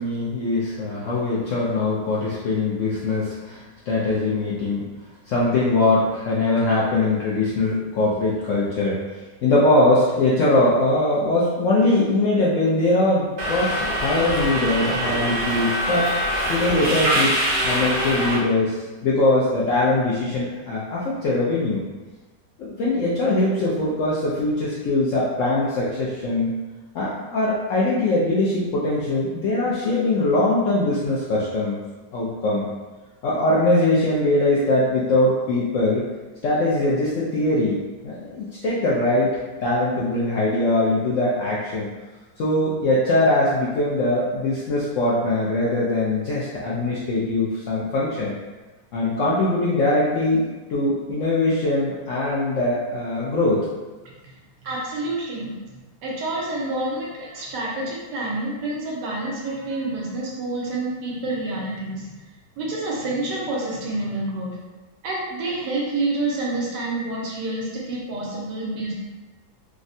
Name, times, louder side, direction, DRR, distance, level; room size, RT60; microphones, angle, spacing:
voice 1, 0.0-4.9 5.3-9.0 9.4-16.1 16.5-21.8 22.6-26.5 26.9-31.8 32.1-32.7 33.2-36.1 36.4-41.9 42.4-48.4 48.9-53.6, left 2 dB, 75° left, -7 dB, 0.7 m, -22 dB
Subway metro underground, 13.4-18.4, right 1 dB, 55° right, 0.8 m, -24 dB
voice 2, 54.6-55.5 56.0-62.1 62.6-64.5 65.0-68.9, right 2 dB, 90° right, -4 dB, 1.4 m, -28 dB
3.5 x 2.1 x 2.6 m, 1.2 s
omnidirectional pair, 1.8 m